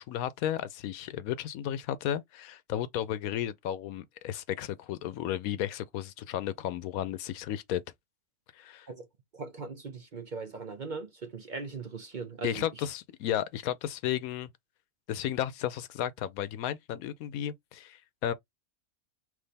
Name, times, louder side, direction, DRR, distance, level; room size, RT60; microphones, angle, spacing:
voice 1, 0.0-7.8 8.6-8.9 12.4-14.5 15.1-18.3, left 11 dB, 85° left, 1.1 m, -33 dB
voice 2, 9.3-12.7, right 4 dB, 45° right, 0.7 m, -39 dB
3.4 x 3.2 x 4.0 m
omnidirectional pair, 1.4 m